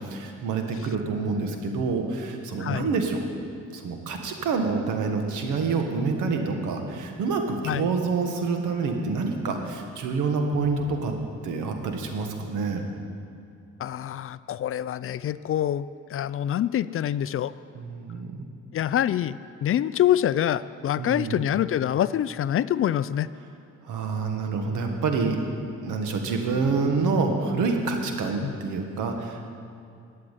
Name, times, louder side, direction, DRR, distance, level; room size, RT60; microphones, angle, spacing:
voice 1, 0.0-3.2 3.7-11.1 11.4-12.8 17.7-18.4 21.0-21.4 23.8-25.4 25.8-29.5, right 4 dB, 85° right, 4 dB, 1.6 m, -27 dB
voice 2, 13.8-17.5 18.7-23.3 28.4-28.5, left 11 dB, 45° left, 16 dB, 0.4 m, -26 dB
12.0 x 7.6 x 9.1 m, 2.5 s
cardioid pair, 90°, 30 cm